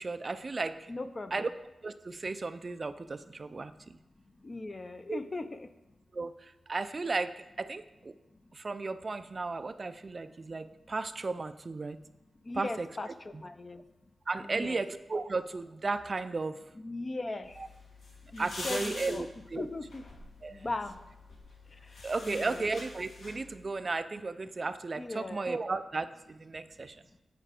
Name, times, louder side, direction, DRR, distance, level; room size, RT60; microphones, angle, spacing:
voice 1, 0.0-0.9 1.3-1.5 1.8-4.0 5.1-5.2 6.1-8.2 8.5-12.0 12.5-12.9 14.3-16.6 18.4-19.3 19.5-19.7 20.4-20.7 22.0-27.0, right 3 dB, 35° right, 12 dB, 0.3 m, -35 dB
voice 2, 0.9-1.5 4.4-5.7 12.5-13.1 13.4-13.8 14.4-14.8 16.7-17.6 18.3-19.3 19.6-20.0 20.5-21.0 21.8-22.7 25.0-25.5, left 2 dB, 30° left, 10 dB, 0.4 m, -38 dB
sound 1, 17.4-23.6, left 2 dB, 65° left, 1.4 m, -45 dB
9.0 x 5.0 x 4.9 m, 0.97 s
wide cardioid pair, 135°, 0 cm